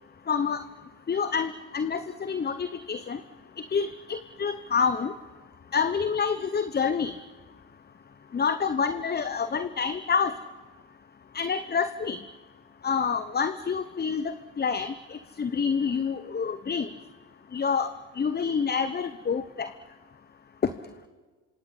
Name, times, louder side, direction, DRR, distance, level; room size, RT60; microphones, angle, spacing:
voice 1, 0.3-0.6 1.1-3.2 3.7-5.1 5.7-7.1 8.3-10.3 11.3-12.2 12.8-16.9 17.5-19.7, left 6 dB, 25° left, 12 dB, 1.0 m, -28 dB
26.5 x 26.5 x 5.6 m, 1.4 s
hypercardioid pair, 65°, 40 cm